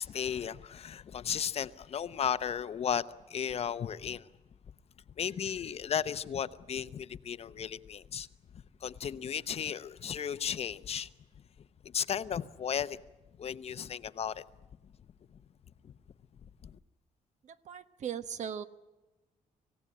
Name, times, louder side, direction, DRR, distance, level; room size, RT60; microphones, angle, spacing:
voice 1, 0.0-3.0 3.3-4.3 5.2-8.3 8.8-11.1 11.9-13.0 13.4-14.4 16.6-16.7, left 8 dB, 45° left, 0.8 m, -34 dB
voice 2, 17.5-18.6, right 8 dB, 60° right, 1.1 m, -38 dB
25.5 x 16.5 x 9.8 m
cardioid pair, 140°, 14 cm